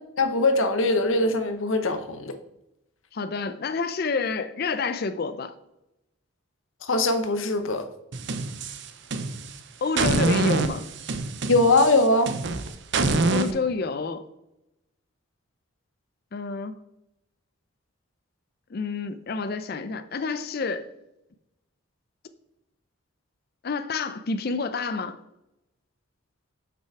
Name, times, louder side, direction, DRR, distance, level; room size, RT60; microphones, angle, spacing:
voice 1, 0.2-2.4 6.8-7.9 11.5-12.3, left 2 dB, 70° left, 0.8 m, -21 dB
voice 2, 3.1-5.5 9.8-10.9 13.3-14.3 16.3-16.8 18.7-20.9 23.6-25.2, left 4 dB, 45° left, 0.5 m, -29 dB
sound 1, 8.1-9.5 10.0-13.5, right 3 dB, 55° right, 0.6 m, -25 dB
6.1 x 5.7 x 4.6 m
head